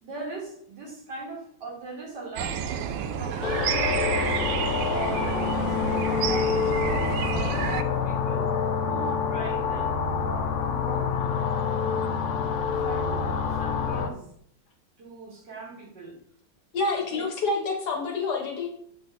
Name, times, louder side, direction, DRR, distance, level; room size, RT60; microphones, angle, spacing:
voice 1, 0.0-4.2 4.8-11.1 11.6-12.1 12.4-14.3 15.0-16.2 17.1-17.2, right 3 dB, 65° right, -3 dB, 2.4 m, -40 dB
sound 1, 2.4-7.8, right 8 dB, 90° right, 1.3 m, -30 dB
sound 2, 3.4-14.1, left 6 dB, 90° left, 0.6 m, -27 dB
voice 2, 16.7-18.7, left 3 dB, 60° left, 1 dB, 1.7 m, -27 dB
7.5 x 3.9 x 3.9 m, 0.65 s
omnidirectional pair, 2.1 m